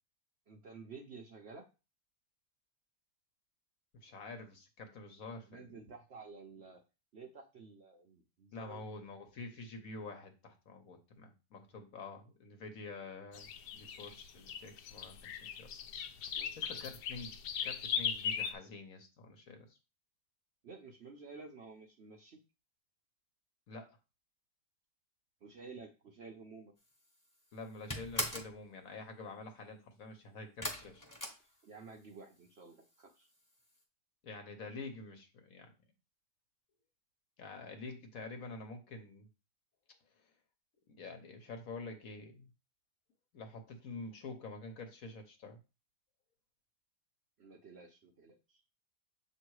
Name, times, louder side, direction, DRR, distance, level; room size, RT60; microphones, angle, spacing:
voice 1, 0.5-1.7 5.5-6.8 7.1-8.9 16.3-16.5 20.6-22.4 25.4-26.7 31.6-33.3 47.4-48.6, right 4 dB, 55° right, 2 dB, 0.7 m, -52 dB
voice 2, 4.0-5.7 8.5-15.7 16.3-17.3 17.6-19.8 23.7-24.0 27.5-31.0 34.2-35.7 37.4-39.3 40.1-40.3 40.9-42.5 43.3-45.6, left 3 dB, 60° left, 5 dB, 1.3 m, -47 dB
sound 1, 13.3-18.5, left 7 dB, 80° left, 1.2 m, -39 dB
sound 2, 26.9-27.3 27.5-28.6 30.6-32.1 32.4-33.0 33.3-33.4 33.7-33.8, left 1 dB, 15° left, 0.9 m, -40 dB
7.1 x 3.1 x 4.7 m, 0.30 s
omnidirectional pair, 1.8 m